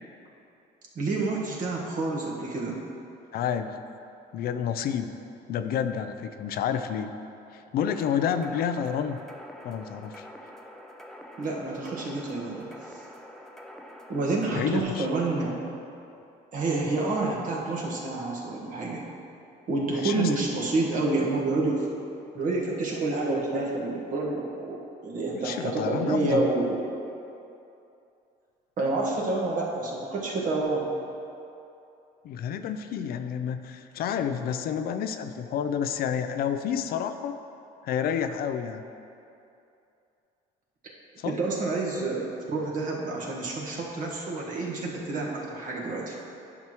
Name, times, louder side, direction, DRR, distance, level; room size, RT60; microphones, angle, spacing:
voice 1, 0.9-2.8 11.4-12.7 14.1-15.6 16.5-19.1 19.7-21.9 22.3-26.8 28.8-30.9 41.2-46.2, right 2 dB, 50° right, -3 dB, 1.5 m, -28 dB
voice 2, 3.3-3.8 4.3-5.1 5.5-7.1 7.5-9.2 9.6-10.3 14.6-15.1 20.0-20.4 25.4-26.5 32.2-37.4 37.8-38.8 41.2-41.3, left 8 dB, 65° left, 9 dB, 0.5 m, -29 dB
sound 1, 7.8-14.6, equal, 5° left, 0.5 m, -46 dB
10.5 x 6.1 x 3.0 m, 2.7 s
cardioid pair, 110°, 17 cm